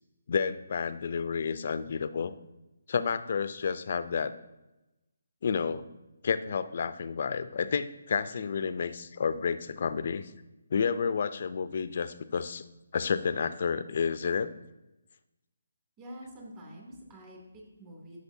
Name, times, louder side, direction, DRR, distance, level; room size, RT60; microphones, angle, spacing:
voice 1, 0.3-2.3 2.9-4.3 5.4-5.9 6.2-10.3 10.7-12.6 12.9-14.5, left 6 dB, 50° left, 13 dB, 0.5 m, -30 dB
voice 2, 16.0-18.2, equal, 20° right, -2 dB, 2.4 m, -47 dB
12.5 x 6.4 x 2.7 m, 0.98 s
hypercardioid pair, 155°, 0 cm